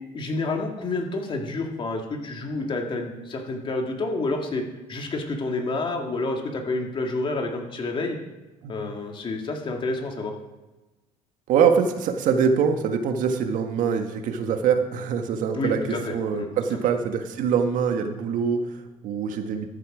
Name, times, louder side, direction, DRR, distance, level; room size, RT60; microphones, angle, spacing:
voice 1, 0.1-4.6 4.9-8.2 8.7-10.3 15.5-16.5, left 2 dB, 35° left, 2 dB, 2.2 m, -29 dB
voice 2, 11.5-19.7, right 6 dB, 65° right, 6 dB, 1.5 m, -24 dB
13.5 x 8.6 x 5.0 m, 1.1 s
cardioid pair, 115°, 14 cm